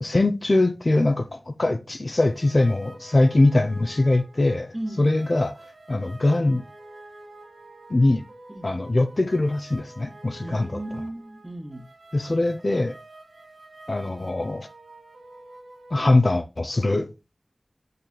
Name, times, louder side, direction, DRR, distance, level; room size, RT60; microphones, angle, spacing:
voice 1, 0.0-5.5 5.9-6.6 7.9-8.2 8.6-10.7 12.1-13.0 13.9-14.7 15.9-17.1, left 2 dB, 55° left, 0.7 m, -22 dB
sound 1, 2.3-16.0, right 2 dB, 85° right, 1.7 m, -47 dB
voice 2, 4.7-5.3 8.5-8.8 10.4-11.8, right 1 dB, 30° right, 1.8 m, -35 dB
7.3 x 6.7 x 2.2 m
wide cardioid pair, 55°, 0 cm